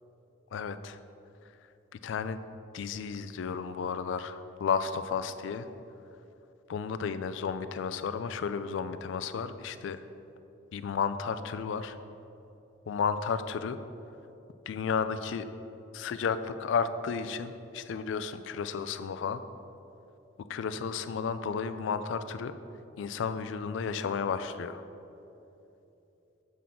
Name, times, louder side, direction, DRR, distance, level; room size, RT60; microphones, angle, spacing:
voice 1, 0.5-1.0 2.0-2.4 2.7-5.7 6.7-10.0 10.7-12.0 12.9-13.8 14.7-15.5 15.9-19.4 20.5-22.5 23.0-24.8, left 6 dB, 75° left, 12 dB, 0.3 m, -32 dB
7.3 x 5.9 x 3.6 m, 3.0 s
head